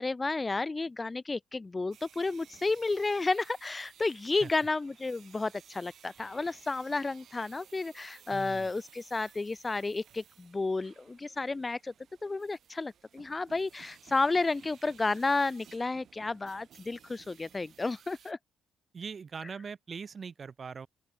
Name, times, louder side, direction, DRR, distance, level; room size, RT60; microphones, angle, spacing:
voice 1, 0.0-11.9 12.2-18.4, left 3 dB, 25° left, 1.2 m, -32 dB
sound 1, 1.9-18.3, right 9 dB, 60° right, 3.5 m, -58 dB
voice 2, 8.3-8.7 18.9-20.9, right 5 dB, 40° right, 7.5 m, -41 dB
open air
cardioid pair, 90°, 0 cm